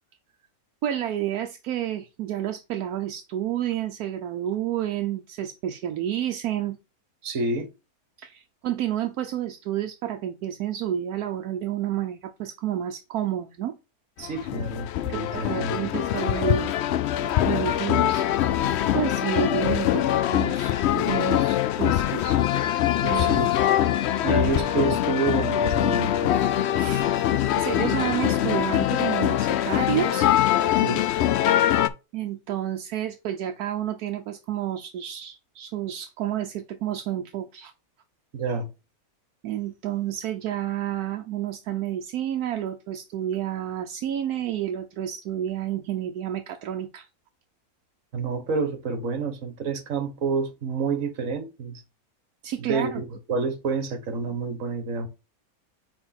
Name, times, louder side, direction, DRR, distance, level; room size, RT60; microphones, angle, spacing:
voice 1, 0.8-6.8 8.2-13.8 15.1-16.9 17.4-18.3 18.9-22.4 23.0-23.5 26.7-27.1 27.5-30.3 32.1-37.7 39.4-47.1 52.4-53.0, right 11 dB, 80° right, 1.2 m, -30 dB
voice 2, 7.2-7.7 14.2-15.9 23.1-23.5 24.2-26.4 30.8-31.0 38.3-38.7 48.1-51.8 52.6-55.1, right 4 dB, 60° right, 1.5 m, -29 dB
sound 1, 14.2-31.9, left 12 dB, 70° left, 0.6 m, -23 dB
4.4 x 4.4 x 5.7 m
omnidirectional pair, 1.6 m